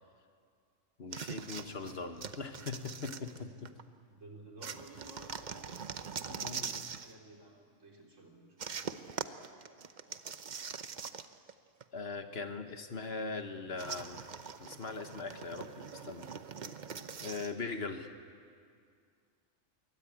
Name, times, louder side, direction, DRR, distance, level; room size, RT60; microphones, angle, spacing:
voice 1, 1.0-3.7 6.3-6.7 11.9-14.2 14.6-16.3 17.2-18.1, left 4 dB, 55° left, 7 dB, 1.5 m, -40 dB
sound 1, 1.1-3.8 4.6-7.1 8.6-11.5 11.8-11.9 13.8-17.5, right 6 dB, 40° right, 0.8 m, -43 dB
voice 2, 4.1-8.8, right 2 dB, 75° right, -1 dB, 4.0 m, -54 dB
23.0 x 17.0 x 9.9 m, 2.2 s
omnidirectional pair, 1.3 m